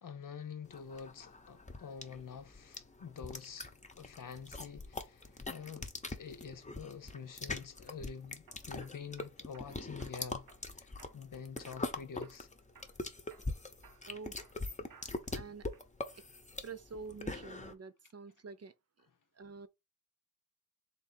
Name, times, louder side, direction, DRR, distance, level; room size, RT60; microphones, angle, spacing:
voice 1, 0.0-5.9 6.2-10.4 10.7-12.5, left 6 dB, 70° left, 0.8 m, -47 dB
sound 1, 0.7-17.7, left 2 dB, 20° left, 0.8 m, -42 dB
sound 2, 7.6-7.9 8.5-9.7 10.0-10.6 11.0-11.3 11.6-12.4 12.7-13.0 13.3-15.3 15.7-16.2, right 6 dB, 85° right, 0.8 m, -61 dB
voice 2, 15.3-15.6 16.6-18.7 19.4-19.7, right 4 dB, 50° right, 0.6 m, -47 dB
3.6 x 2.7 x 4.2 m
wide cardioid pair, 65°, 33 cm